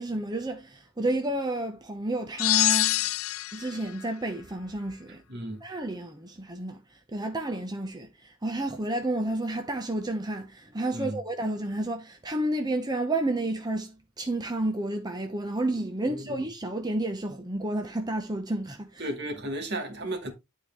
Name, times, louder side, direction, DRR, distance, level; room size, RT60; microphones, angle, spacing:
voice 1, 0.0-3.1 3.5-5.2 5.6-19.1, right 1 dB, 20° right, 0.9 m, -31 dB
sound 1, 2.4-3.8, left 17 dB, 75° left, 0.4 m, -24 dB
voice 2, 5.3-5.6 10.9-11.2 16.1-16.4 19.0-20.3, right 1 dB, 55° right, 2.2 m, -34 dB
11.5 x 4.8 x 3.4 m
head